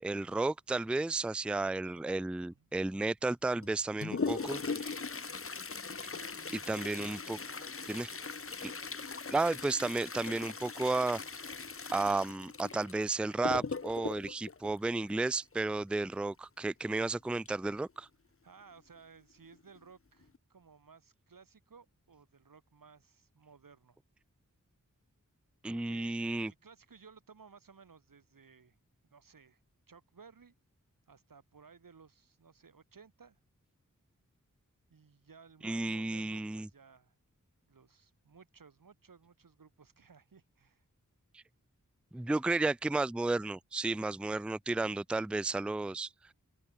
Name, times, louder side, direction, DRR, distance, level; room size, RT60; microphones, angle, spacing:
voice 1, 0.0-4.6 6.7-7.4 7.9-8.1 8.6-8.7 9.3-11.2 11.9-18.1 25.6-26.5 35.6-36.7 41.3-41.4 42.1-46.1, right 3 dB, 5° right, 0.4 m, -33 dB
Toilet flush, 3.6-15.6 17.5-17.6 17.9-18.0 18.8-18.9 19.5-19.8 20.2-20.4, left 4 dB, 45° left, 0.9 m, -40 dB
voice 2, 4.1-5.4 6.1-8.2 18.4-24.0 25.7-28.8 29.1-29.6 29.9-30.5 31.1-33.4 34.9-37.2 37.7-40.8, right 5 dB, 85° right, 1.5 m, -58 dB
wide cardioid pair, 60°, 33 cm